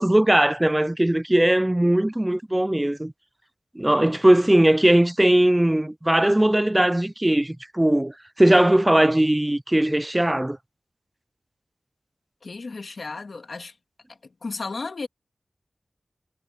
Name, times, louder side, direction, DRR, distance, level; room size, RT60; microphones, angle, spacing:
voice 1, 0.0-3.1 3.8-10.6, right 1 dB, 15° right, 0.4 m, -19 dB
voice 2, 12.4-13.8 14.1-15.1, left 3 dB, 70° left, 2.2 m, -34 dB
wide cardioid pair, 90°, 0 cm